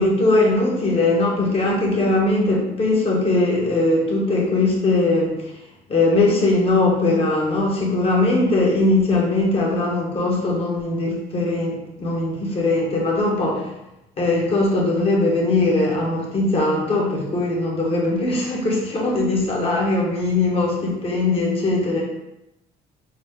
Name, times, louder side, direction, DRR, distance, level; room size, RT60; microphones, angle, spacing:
voice 1, 0.0-5.5 5.9-13.7 14.2-22.0, left 2 dB, 35° left, -2 dB, 1.4 m, -20 dB
6.2 x 2.2 x 3.6 m, 0.88 s
cardioid pair, 110°, 17 cm